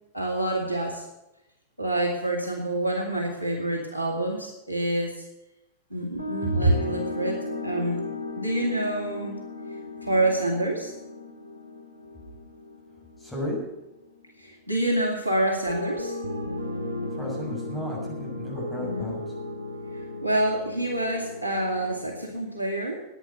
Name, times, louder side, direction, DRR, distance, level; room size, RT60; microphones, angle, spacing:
voice 1, 0.1-1.0 1.8-5.3 5.9-8.0 8.4-9.4 10.0-10.9 14.4-16.1 18.8-19.2 19.9-23.0, right 1 dB, 85° left, 0 dB, 2.3 m, -27 dB
sound 1, 6.2-14.3 15.7-22.3, left 2 dB, 85° right, 1.2 m, -35 dB
voice 2, 13.2-13.6 17.1-19.2, left 1 dB, 5° left, -5 dB, 7.0 m, -34 dB
11.0 x 9.6 x 9.1 m, 0.90 s
figure-of-eight pair, 90°, 0 cm